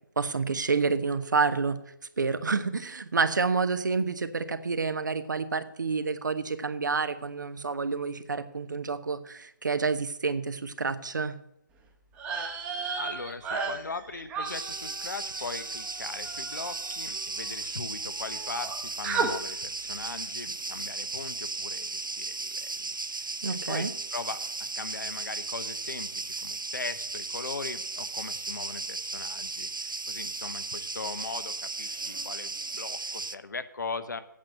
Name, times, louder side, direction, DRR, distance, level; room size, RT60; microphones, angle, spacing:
voice 1, 0.2-1.8 2.2-11.3 23.4-23.9, right 4 dB, 65° right, 11 dB, 0.9 m, -28 dB
sound 1, 12.1-17.8 18.0-18.7 19.0-19.3, right 4 dB, 10° right, 1.1 m, -35 dB
voice 2, 13.0-34.2, left 4 dB, 60° left, 11 dB, 1.0 m, -39 dB
sound 2, 14.4-33.3, right 3 dB, 80° right, 0.6 m, -36 dB
8.5 x 7.5 x 7.7 m, 0.79 s
figure-of-eight pair, 145°, 11 cm